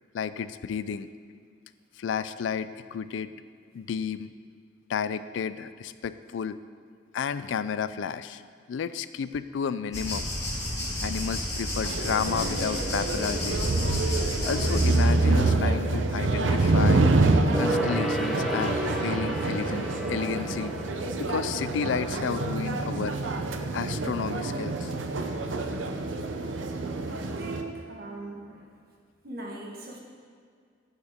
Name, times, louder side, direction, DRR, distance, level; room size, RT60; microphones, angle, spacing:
voice 1, 0.1-1.1 2.0-3.3 3.7-4.3 4.9-6.6 7.1-8.4 8.7-10.3 11.0-13.6 14.4-17.1 17.6-20.7 21.2-23.2 23.7-24.9, left 6 dB, 80° left, 14 dB, 0.4 m, -32 dB
sound 1, 9.9-15.0, left 1 dB, 15° left, 2.3 m, -31 dB
sound 2, 11.8-27.6, right 2 dB, 85° right, 0.7 m, -26 dB
Gong, 17.5-23.4 23.7-23.8, right 1 dB, ahead, 0.7 m, -33 dB
voice 2, 27.1-28.7 29.2-30.0, right 2 dB, 50° right, 0 dB, 1.4 m, -40 dB
9.7 x 9.3 x 3.6 m, 2.1 s
head